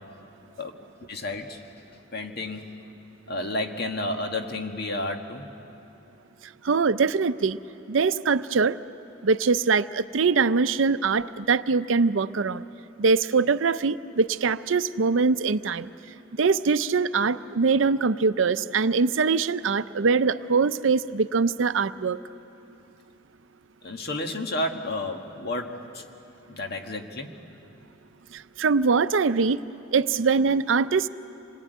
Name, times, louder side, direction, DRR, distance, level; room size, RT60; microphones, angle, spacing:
voice 1, 1.1-1.6 2.1-2.8 3.3-5.5 23.8-26.1 26.5-27.3, left 2 dB, 55° left, 4 dB, 1.7 m, -31 dB
voice 2, 6.6-7.6 7.9-8.8 9.2-12.6 13.0-15.9 16.4-22.2 28.6-29.6 29.9-31.1, right 4 dB, 75° right, 13 dB, 0.6 m, -23 dB
26.5 x 21.0 x 9.3 m, 2.9 s
head